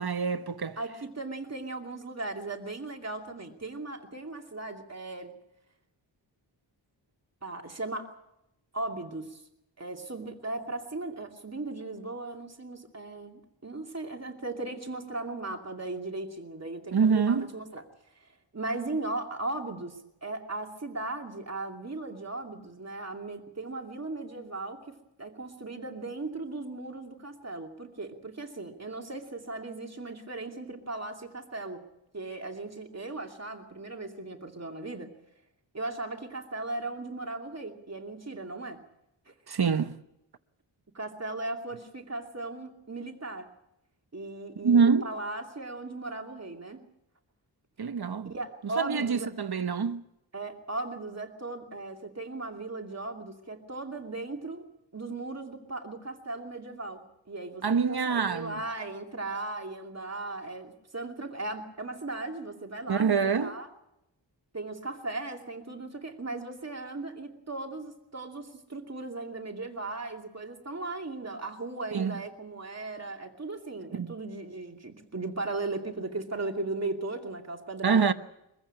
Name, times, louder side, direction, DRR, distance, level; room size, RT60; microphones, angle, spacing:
voice 1, 0.0-0.8 16.9-17.5 39.5-40.0 44.6-45.1 47.8-48.3 48.6-50.0 57.6-58.6 62.9-63.6 71.9-72.2 73.9-74.2 77.8-78.1, right 6 dB, 55° right, 1.1 m, -25 dB
voice 2, 0.8-5.3 7.4-8.1 8.7-9.4 9.8-17.8 18.5-31.8 32.1-35.1 35.7-38.8 39.3-39.4 40.9-43.5 44.1-46.8 48.2-49.3 50.3-54.7 54.9-63.7 64.5-78.1, right 2 dB, 35° right, 2.7 m, -37 dB
23.5 x 15.0 x 8.8 m
wide cardioid pair, 95°, 45 cm